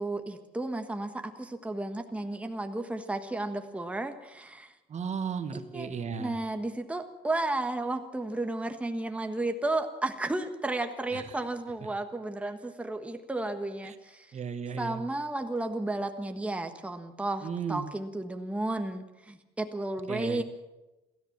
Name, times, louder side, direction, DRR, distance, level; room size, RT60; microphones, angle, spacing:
voice 1, 0.0-4.7 5.5-14.3 14.8-20.4, right 2 dB, 5° right, 6 dB, 1.5 m, -33 dB
voice 2, 4.9-6.3 11.1-11.2 13.8-13.9 14.3-15.0 17.4-17.9 20.1-20.4, right 6 dB, 45° right, 9 dB, 1.7 m, -35 dB
28.0 x 13.5 x 7.4 m, 1.0 s
cardioid pair, 110°, 17 cm